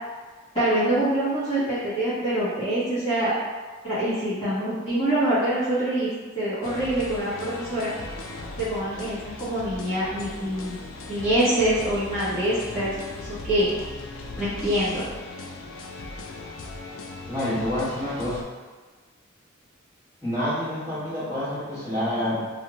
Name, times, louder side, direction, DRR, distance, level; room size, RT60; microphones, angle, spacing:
voice 1, 0.5-3.3 3.8-6.1 6.3-7.9 8.6-10.8 11.1-12.9 13.2-13.7 14.4-15.0, right 1 dB, 30° left, -15 dB, 1.1 m, -25 dB
sound 1, 6.6-18.4, left 3 dB, 80° left, 0.4 m, -38 dB
voice 2, 17.3-18.4 20.2-22.5, left 1 dB, 15° left, -14 dB, 1.2 m, -28 dB
2.4 x 2.3 x 3.0 m, 1.4 s
head